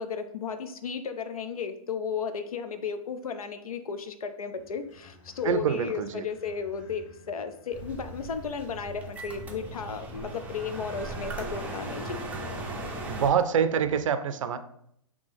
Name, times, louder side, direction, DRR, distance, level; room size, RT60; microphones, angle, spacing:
voice 1, 0.0-12.2, left 6 dB, 75° left, 9 dB, 0.5 m, -34 dB
sound 1, 4.5-14.0, left 4 dB, 55° left, 1.3 m, -52 dB
voice 2, 5.4-6.3 13.1-14.6, right 7 dB, 60° right, 11 dB, 0.5 m, -26 dB
sound 2, 7.7-13.3, right 2 dB, 10° right, 0.5 m, -38 dB
4.2 x 2.9 x 3.4 m, 0.70 s
hypercardioid pair, 120°, 19 cm